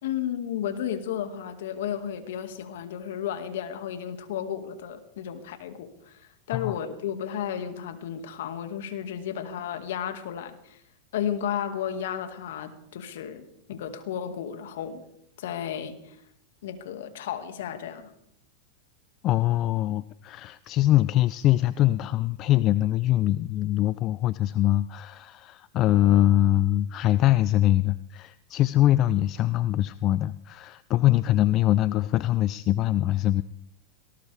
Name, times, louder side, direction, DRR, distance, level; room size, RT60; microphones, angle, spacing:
voice 1, 0.0-10.8 11.1-15.0 15.4-16.2 16.6-18.1, left 9 dB, 70° left, 8 dB, 2.1 m, -33 dB
voice 2, 19.2-33.4, left 14 dB, 40° left, 16 dB, 0.5 m, -23 dB
18.5 x 18.5 x 3.5 m, 0.74 s
hypercardioid pair, 105°, 0 cm